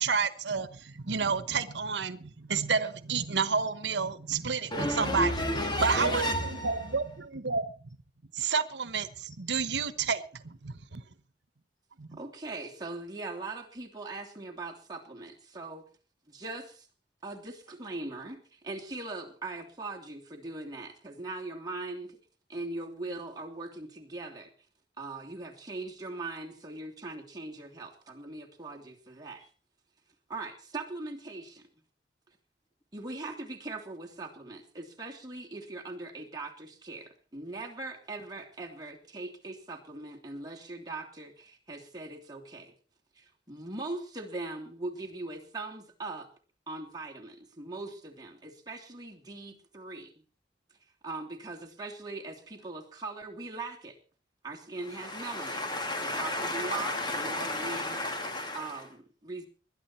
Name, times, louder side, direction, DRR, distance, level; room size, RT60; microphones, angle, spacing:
voice 1, 0.0-5.3 5.8-7.7 8.3-11.0 12.0-12.2, right 5 dB, 90° right, 1.1 m, -30 dB
voice 2, 4.7-6.9 54.9-58.8, left 1 dB, 25° left, 2.5 m, -32 dB
voice 3, 12.2-15.8 16.3-16.7 17.2-22.2 22.5-24.5 25.0-29.4 30.3-31.6 32.9-42.7 43.5-46.3 46.7-50.1 51.0-53.9 54.4-55.7 56.0-58.0 58.5-59.5, right 2 dB, 25° right, 3.0 m, -40 dB
21.0 x 11.0 x 4.5 m
head